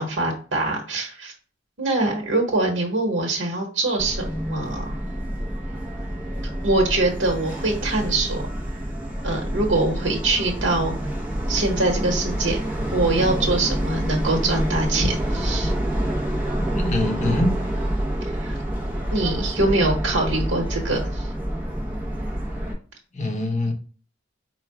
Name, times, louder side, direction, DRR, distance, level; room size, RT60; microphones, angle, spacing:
voice 1, 0.0-1.3 1.8-5.0 6.6-8.4 9.2-11.0 11.5-12.6 12.9-15.7 18.4-18.6 19.1-21.3, right 2 dB, 75° right, 1 dB, 1.1 m, -23 dB
Subway metro underground, 4.0-22.7, right 1 dB, 10° right, 0.9 m, -27 dB
voice 2, 16.7-17.6 23.1-23.7, left 1 dB, 40° left, 3 dB, 0.9 m, -23 dB
4.5 x 2.3 x 4.7 m, 0.39 s
head